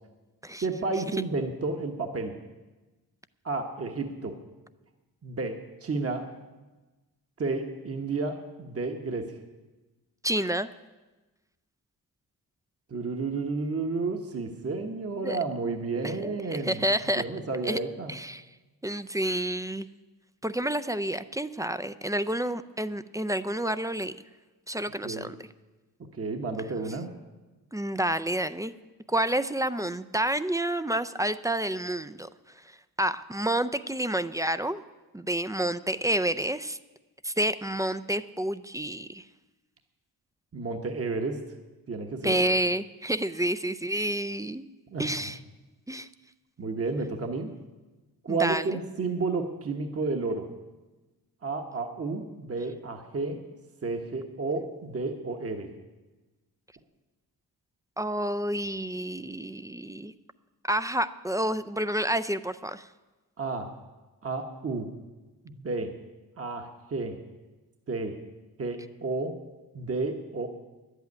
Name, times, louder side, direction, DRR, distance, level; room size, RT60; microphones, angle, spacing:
voice 1, 0.6-2.4 3.4-4.4 5.2-6.3 7.4-9.3 12.9-16.8 17.1-18.1 25.0-25.3 26.2-27.1 40.5-41.4 41.9-42.4 44.9-45.3 46.6-47.5 48.2-50.5 51.4-53.4 53.8-55.7 63.4-63.7 64.2-64.9 65.4-65.9 66.4-67.2 67.9-68.2 68.6-69.3 69.7-70.6, right 3 dB, 40° right, 4 dB, 1.2 m, -31 dB
voice 2, 10.2-10.7 15.2-15.4 16.0-17.2 17.6-17.8 18.1-18.4 18.8-19.9 20.4-24.2 24.7-25.3 27.7-28.7 29.1-32.3 33.0-34.8 35.1-36.8 37.2-39.2 42.2-44.6 45.0-45.4 45.9-46.1 48.3-48.8 58.0-60.1 60.7-62.9, right 1 dB, 10° right, 12 dB, 0.4 m, -29 dB
11.0 x 8.2 x 9.5 m, 1.2 s
wide cardioid pair, 100°, 38 cm